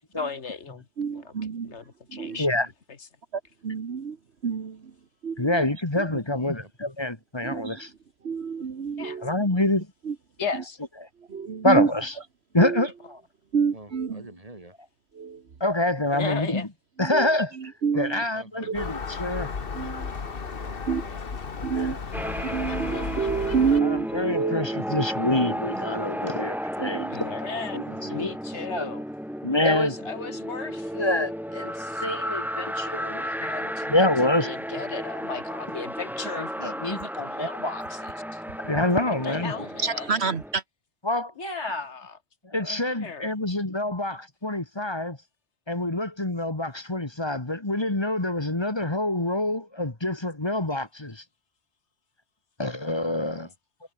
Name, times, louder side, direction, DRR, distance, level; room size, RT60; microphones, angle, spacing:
voice 1, 0.2-1.3 1.6-2.5 2.9-3.1 9.0-9.2 10.4-10.8 12.0-12.2 16.1-16.7 18.6-19.0 26.9-27.8 28.1-29.0 29.7-33.9 34.4-38.4 39.1-40.1 41.4-42.2 42.8-43.3, left 5 dB, 85° left, 2.0 m, -37 dB
voice 2, 1.0-1.7 2.1-2.4 3.6-4.2 4.4-4.8 5.2-5.7 6.0-6.1 7.4-7.8 8.2-9.3 10.1-10.2 11.3-11.9 12.6-12.9 13.5-14.2 15.2-15.4 17.0-18.2 18.8-18.9 19.7-20.1 20.9-21.0 21.6-22.2 22.5-24.8 26.8-27.2 39.8-40.6, right 6 dB, 70° right, 1.6 m, -28 dB
voice 3, 2.2-2.7 6.3-6.7 13.7-14.8 17.9-18.7 20.3-21.2 27.9-28.7 39.2-39.9 52.9-53.5, right 1 dB, 30° right, 4.7 m, -48 dB
voice 4, 5.4-7.9 9.2-9.9 10.4-10.5 11.6-12.1 12.5-13.2 15.6-16.7 17.0-17.5 18.0-19.5 21.8-22.0 23.8-27.3 27.7-27.8 28.1-28.3 28.7-28.9 29.4-30.0 30.6-30.7 31.0-31.7 32.0-34.5 34.9-35.0 36.4-37.7 38.6-39.6 41.0-41.9 42.4-45.2 45.7-51.2 52.6-53.5, left 1 dB, 25° left, 1.9 m, -26 dB
Gull seagull, 18.7-23.8, left 5 dB, 55° left, 1.6 m, -34 dB
sound 1, 22.1-40.5, equal, ahead, 2.0 m, -33 dB
omnidirectional pair, 1.1 m